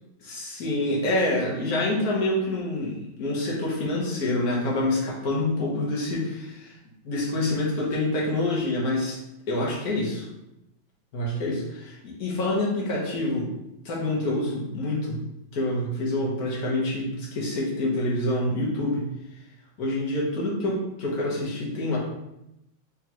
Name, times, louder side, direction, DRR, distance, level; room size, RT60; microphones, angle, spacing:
voice 1, 0.2-6.7 7.0-9.2 9.5-10.3 11.1-13.5 13.8-15.2 15.5-19.1 19.8-22.0, left 1 dB, 55° left, -4 dB, 1.4 m, -27 dB
3.7 x 3.6 x 2.9 m, 0.88 s
omnidirectional pair, 2.2 m